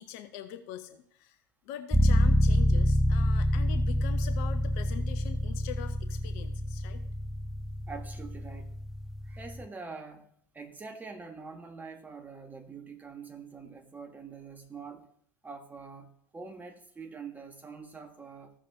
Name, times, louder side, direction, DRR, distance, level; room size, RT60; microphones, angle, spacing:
voice 1, 0.0-1.4 1.6-7.0, left 10 dB, 55° left, 8 dB, 0.9 m, -43 dB
sound 1, 1.9-9.7, equal, ahead, 0.4 m, -27 dB
voice 2, 7.9-8.8 9.2-15.1 15.4-18.5, right 4 dB, 15° right, 6 dB, 1.4 m, -45 dB
15.0 x 6.5 x 2.8 m, 0.65 s
figure-of-eight pair, 70°, 10 cm